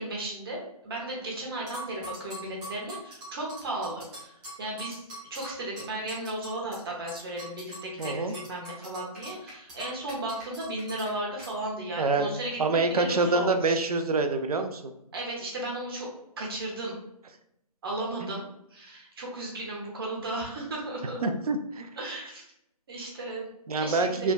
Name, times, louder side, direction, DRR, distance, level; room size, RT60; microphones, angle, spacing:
voice 1, 0.0-4.3 4.6-13.8 15.1-16.1 16.4-17.0 17.8-21.2 22.0-22.4 22.9-23.5 23.8-24.3, right 1 dB, 35° right, -3 dB, 0.8 m, -35 dB
sound 1, 1.7-6.8 7.1-11.1 11.4-11.5, right 1 dB, 5° right, 0.4 m, -42 dB
voice 2, 8.0-8.3 12.0-12.3 12.6-14.9 18.2-18.3 21.2-21.9 23.7-24.3, right 3 dB, 65° right, 7 dB, 0.4 m, -26 dB
3.3 x 2.2 x 2.3 m, 0.78 s
figure-of-eight pair, 150°, 20 cm